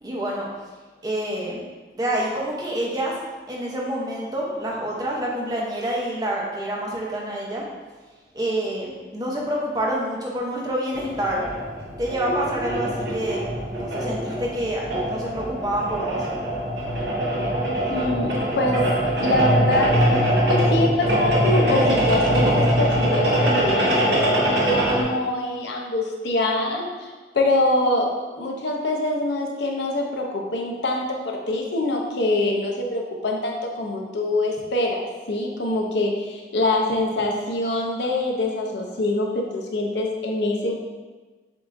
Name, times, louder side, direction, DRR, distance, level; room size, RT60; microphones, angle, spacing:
voice 1, 0.0-0.5 1.0-1.6 1.9-3.1 3.5-7.6 8.3-11.4 12.0-13.4 13.7-16.3, right 1 dB, 20° right, -3 dB, 0.7 m, -27 dB
sound 1, 10.9-25.0, equal, 75° right, 0.9 m, -22 dB
voice 2, 17.9-18.9 19.2-20.0 20.5-40.7, left 1 dB, 80° left, 0 dB, 0.6 m, -24 dB
7.3 x 2.6 x 2.5 m, 1.3 s
head